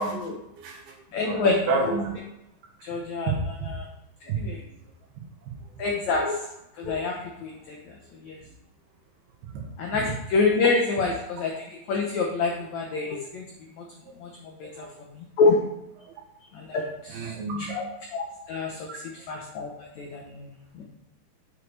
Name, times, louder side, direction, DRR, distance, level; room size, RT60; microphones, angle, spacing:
voice 1, 0.0-0.9 1.2-2.1 3.3-3.4 4.3-4.6 14.7-15.0 16.0-16.1 17.1-17.7 18.9-19.0, right 4 dB, 85° right, 1 dB, 3.3 m, -30 dB
voice 2, 1.1-1.9 2.8-3.3 3.6-3.9 4.4-4.6 5.8-6.5 6.8-7.8 8.2-8.4 9.8-13.4 13.8-13.9 14.2-14.3 14.6-14.7 15.1-15.6 16.5-17.3 17.7-17.8 18.1-19.0 19.3-20.5 20.7-20.9, left 4 dB, 80° left, 0 dB, 1.6 m, -27 dB
7.4 x 6.9 x 3.2 m, 0.85 s
omnidirectional pair, 4.4 m